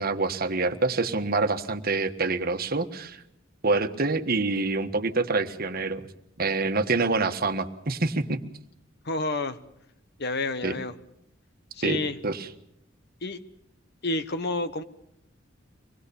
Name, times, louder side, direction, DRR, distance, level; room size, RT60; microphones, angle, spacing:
voice 1, 0.0-3.2 3.6-6.1 6.4-8.4 10.6-10.8 11.8-12.0 12.2-12.5, right 3 dB, 50° right, 8 dB, 1.4 m, -26 dB
voice 2, 9.0-9.6 10.2-10.9 11.7-12.2 13.2-13.4 14.0-14.8, left 2 dB, 55° left, 11 dB, 1.3 m, -29 dB
24.5 x 19.5 x 7.0 m, 0.77 s
head